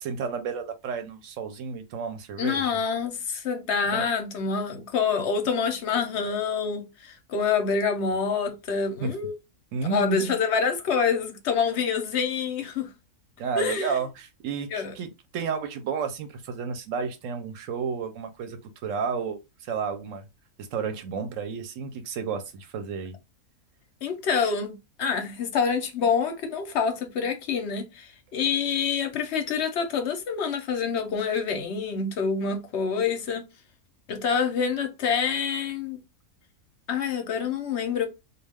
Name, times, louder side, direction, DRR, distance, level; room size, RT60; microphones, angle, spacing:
voice 1, 0.0-2.7 3.9-4.1 9.0-9.1 9.7-10.4 13.4-20.3 20.6-23.2, right 5 dB, 70° right, 0.9 m, -32 dB
voice 2, 2.4-9.3 9.9-12.9 13.6-14.0 14.7-14.9 24.0-33.4 34.1-36.0 36.9-38.1, left 6 dB, 60° left, 0.7 m, -27 dB
2.3 x 2.3 x 3.3 m
omnidirectional pair, 1.6 m